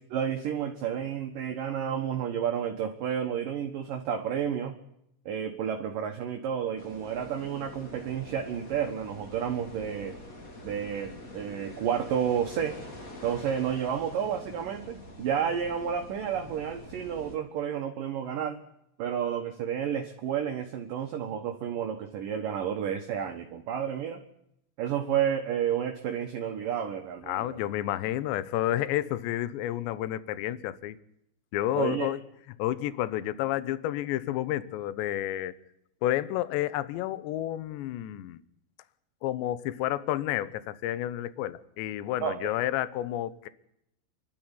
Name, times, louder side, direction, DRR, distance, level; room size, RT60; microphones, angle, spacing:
voice 1, 0.1-4.8 5.3-10.2 10.6-12.8 13.2-18.6 19.0-24.2 24.8-27.6 31.8-32.1 42.2-42.6, right 8 dB, 65° right, 4 dB, 2.3 m, -31 dB
sound 1, 6.8-17.3, left 1 dB, 30° left, 1.7 m, -45 dB
voice 2, 27.3-31.0 31.5-32.2 32.6-35.5 36.0-38.4 39.2-43.5, left 13 dB, 75° left, 16 dB, 3.0 m, -30 dB
29.5 x 12.5 x 9.9 m, 0.80 s
omnidirectional pair, 5.7 m